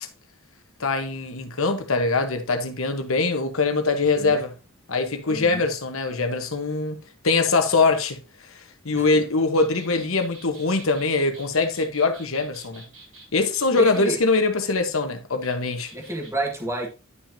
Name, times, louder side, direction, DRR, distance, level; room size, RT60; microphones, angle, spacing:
voice 1, 0.8-4.5 4.9-7.0 7.2-8.2 8.5-12.8 13.3-15.9, left 3 dB, 80° left, 1.2 m, -23 dB
voice 2, 5.3-5.6 8.9-9.2 13.7-14.2 15.9-16.9, right 1 dB, 15° right, 1.8 m, -30 dB
sound 1, 9.5-14.1 15.4-16.3, right 3 dB, 80° right, 4.8 m, -47 dB
11.0 x 6.0 x 2.8 m
head